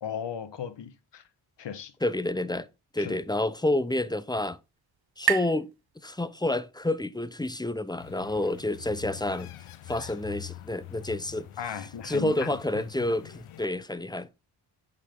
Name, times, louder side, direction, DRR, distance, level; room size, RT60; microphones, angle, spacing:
voice 1, 0.0-1.2 1.6-1.9 3.0-3.1 11.6-12.8, left 8 dB, 60° left, 1.3 m, -36 dB
voice 2, 2.0-2.7 2.9-4.6 5.2-5.7 6.0-9.5 9.9-11.5 12.0-14.3, left 1 dB, 10° left, 0.7 m, -29 dB
sound 1, 2.9-6.7, right 11 dB, 50° right, 0.7 m, -35 dB
sound 2, 8.0-13.7, left 13 dB, 85° left, 0.8 m, -45 dB
8.2 x 5.4 x 3.7 m
cardioid pair, 55°, 48 cm